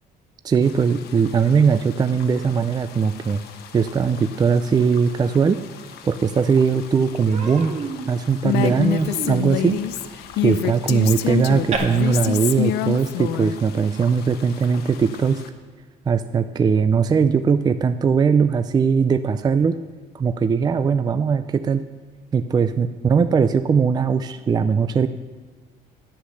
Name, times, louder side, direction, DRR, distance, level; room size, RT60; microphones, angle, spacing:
voice 1, 0.4-3.4 3.7-5.6 6.0-7.8 8.1-9.8 10.4-15.4 16.1-19.8 20.1-21.8 22.3-25.1, right 6 dB, 25° right, 11 dB, 0.4 m, -20 dB
sound 1, 0.6-15.5, left 8 dB, 75° left, 1.0 m, -44 dB
Human voice, 6.3-6.4 6.7-6.9 7.3-11.8, right 4 dB, 45° right, 1.9 m, -33 dB
Female speech woman speaking, 8.4-13.5, left 12 dB, 90° left, 0.5 m, -25 dB
9.7 x 8.6 x 6.4 m, 1.4 s
cardioid pair, 110°, 17 cm